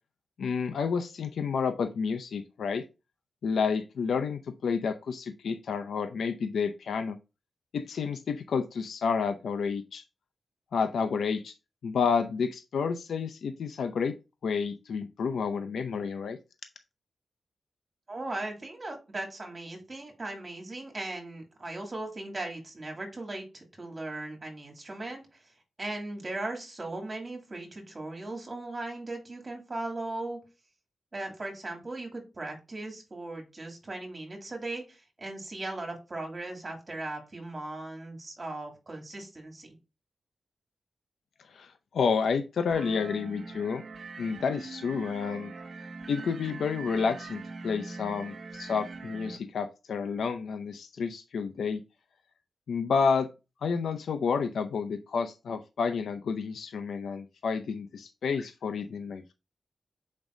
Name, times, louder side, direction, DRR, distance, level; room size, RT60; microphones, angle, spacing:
voice 1, 0.4-2.8 3.4-7.2 7.7-10.0 10.7-11.5 11.8-14.2 14.4-16.4 41.5-43.8 44.2-45.5 46.1-51.8 52.7-53.3 53.6-59.3, left 5 dB, 90° left, 8 dB, 0.5 m, -30 dB
voice 2, 18.1-25.4 25.8-30.4 31.1-39.7, right 2 dB, 30° right, 1 dB, 2.5 m, -38 dB
sound 1, 42.7-49.4, right 3 dB, 55° right, 0.8 m, -42 dB
7.2 x 5.2 x 2.6 m, 0.28 s
wide cardioid pair, 115°, 0 cm